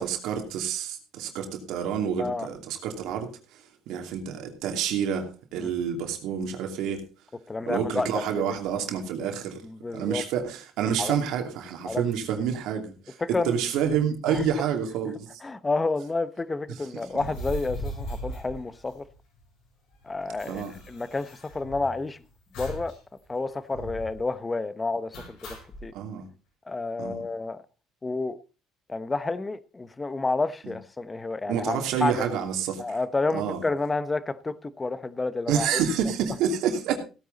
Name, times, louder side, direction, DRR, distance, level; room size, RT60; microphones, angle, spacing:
voice 1, 0.0-7.0 7.7-9.6 9.9-15.4 17.1-17.2 20.5-20.7 23.8-23.9 25.9-26.3 27.0-27.2 30.6-30.7 31.5-33.0 33.3-33.6 35.5-37.0, right 8 dB, 75° right, 2.9 m, -28 dB
voice 2, 7.5-8.2 9.6-10.2 11.0-11.2 11.8-12.0 13.2-13.6 14.2-14.7 15.4-19.0 20.0-22.2 22.6-22.9 23.3-25.6 25.8-25.9 26.7-27.6 28.0-28.4 28.9-32.4 32.8-35.8, left 3 dB, 20° left, 1.0 m, -30 dB
sound 1, 17.1-19.4 19.7-19.8 19.9-22.0 22.5-23.0 23.2-23.3 23.7-24.2 25.1-25.9, equal, 70° left, 7.5 m, -38 dB
16.5 x 9.3 x 4.1 m
cardioid pair, 105°, 0 cm